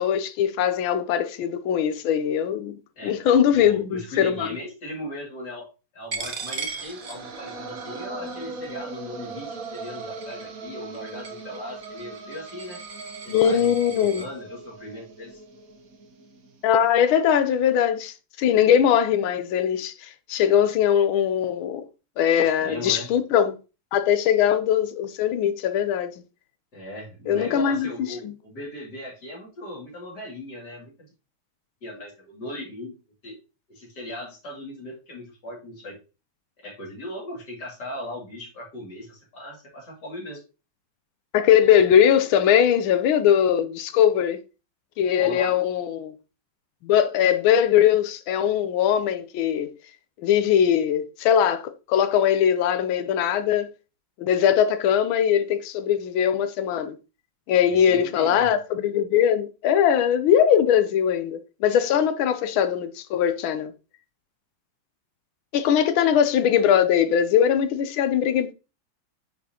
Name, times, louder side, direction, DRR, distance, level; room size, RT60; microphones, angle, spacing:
voice 1, 0.0-2.7 3.0-4.5 13.3-14.2 16.6-21.9 22.2-23.6 23.9-26.1 27.3-27.9 28.2-28.3 41.3-44.4 45.0-46.2 46.8-49.7 50.2-53.7 54.2-57.0 57.5-63.7 65.5-68.5, left 9 dB, 75° left, 1.4 m, -21 dB
voice 2, 3.5-5.7 5.9-12.8 13.2-15.4 22.3-23.1 26.7-30.9 31.8-32.9 33.2-33.4 33.7-36.0 36.6-40.4 45.2-45.6 57.7-58.5, left 1 dB, 50° left, 3.0 m, -38 dB
Coin (dropping), 6.1-14.3, right 4 dB, 85° right, 0.4 m, -39 dB
sound 1, 6.5-16.6, right 3 dB, 50° right, 1.1 m, -39 dB
9.5 x 4.2 x 2.9 m
omnidirectional pair, 2.4 m